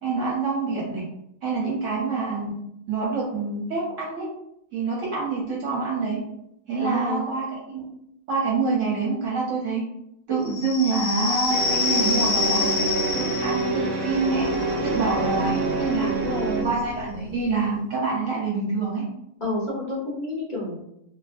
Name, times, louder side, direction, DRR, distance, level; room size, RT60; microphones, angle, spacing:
voice 1, 0.0-1.0 1.4-2.6 2.9-4.3 4.7-6.2 6.7-7.8 8.3-9.8 10.3-12.8 13.1-14.5 14.8-16.1 16.6-19.1, right 4 dB, 60° right, -4 dB, 0.9 m, -26 dB
voice 2, 6.8-7.2 13.9-14.0 16.0-16.8 19.4-20.8, left 1 dB, 50° left, -7 dB, 0.6 m, -29 dB
sound 1, 10.5-17.7, left 4 dB, 70° left, 1.0 m, -29 dB
sound 2, 11.5-16.6, right 3 dB, 85° right, 0.5 m, -27 dB
2.6 x 2.4 x 2.4 m, 0.78 s
omnidirectional pair, 1.7 m